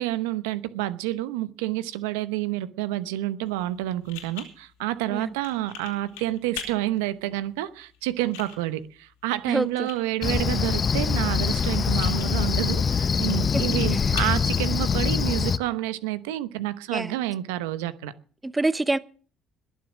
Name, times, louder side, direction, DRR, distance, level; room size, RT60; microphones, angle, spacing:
voice 1, 0.0-18.1, right 15 dB, 85° right, 0.8 m, -29 dB
sound 1, 3.5-15.5, left 9 dB, 85° left, 4.0 m, -44 dB
voice 2, 9.5-9.9 13.5-13.6 13.9-14.3 16.9-17.2 18.4-19.0, right 2 dB, 15° right, 0.8 m, -27 dB
Cricket, 10.2-15.6, left 6 dB, 40° left, 0.8 m, -24 dB
21.0 x 7.4 x 6.2 m
hypercardioid pair, 60°, 0 cm